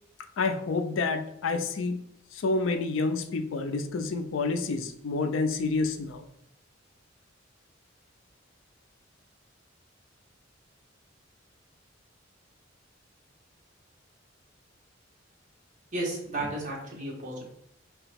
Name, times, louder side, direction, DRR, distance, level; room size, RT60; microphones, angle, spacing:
voice 1, 0.4-2.0 2.3-6.3, left 3 dB, 80° left, 8 dB, 0.4 m, -28 dB
voice 2, 15.9-17.5, right 1 dB, 40° right, -4 dB, 1.3 m, -33 dB
3.7 x 2.9 x 3.4 m, 0.75 s
head